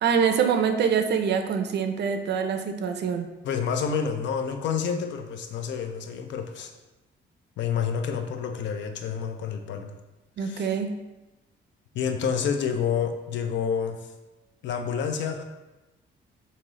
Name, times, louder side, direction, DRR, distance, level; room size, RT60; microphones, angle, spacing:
voice 1, 0.0-3.3 10.4-10.9, right 7 dB, 60° right, 7 dB, 0.4 m, -25 dB
voice 2, 3.4-6.7 7.6-9.9 10.4-10.8 11.9-14.1 14.6-15.4, left 7 dB, 65° left, 6 dB, 0.5 m, -29 dB
3.1 x 2.8 x 3.6 m, 1.1 s
cardioid pair, 90°, 20 cm